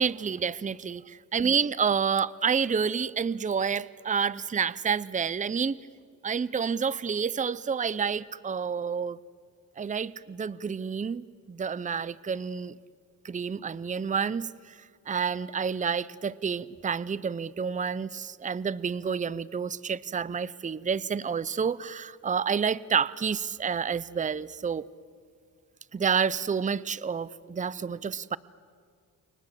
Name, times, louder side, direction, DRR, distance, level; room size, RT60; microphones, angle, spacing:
voice 1, 0.0-5.8 6.2-9.2 9.8-12.7 13.2-24.9 25.9-28.4, right 6 dB, 20° right, 19 dB, 0.6 m, -29 dB
29.5 x 24.5 x 7.6 m, 2.1 s
cardioid pair, 90°, 34 cm